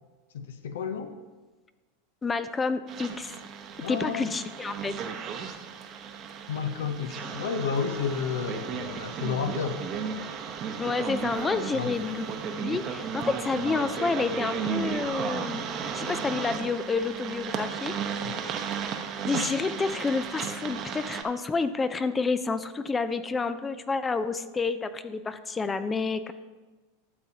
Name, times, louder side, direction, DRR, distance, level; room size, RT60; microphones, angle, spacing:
voice 1, 0.3-1.1 3.8-4.3 6.5-9.8 11.7-11.9 18.2-18.5, left 6 dB, 80° left, 8 dB, 0.7 m, -31 dB
voice 2, 2.2-3.4 3.9-5.0 10.8-15.6 15.9-18.0 19.3-26.3, left 4 dB, 20° left, 12 dB, 0.4 m, -29 dB
sound 1, 2.9-21.2, right 6 dB, 40° right, 0.9 m, -34 dB
12.5 x 7.0 x 2.8 m, 1.3 s
hypercardioid pair, 105°, 0 cm